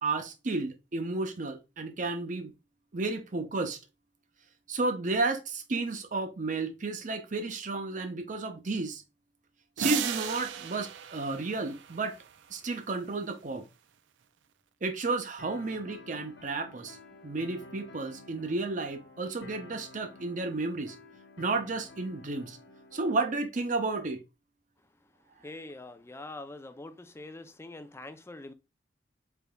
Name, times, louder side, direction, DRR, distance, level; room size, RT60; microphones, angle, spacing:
voice 1, 0.0-2.5 2.9-3.8 4.7-9.0 9.8-12.2 12.5-13.6 14.8-17.0 17.2-21.0 21.4-22.6 22.9-24.2, right 3 dB, 45° right, 0.7 m, -32 dB
sound 1, 9.8-12.3, right 10 dB, 90° right, 0.4 m, -35 dB
sound 2, 15.4-23.4, left 2 dB, 80° left, 1.1 m, -52 dB
voice 2, 25.4-28.5, left 2 dB, 15° left, 0.4 m, -44 dB
4.1 x 3.4 x 2.2 m
head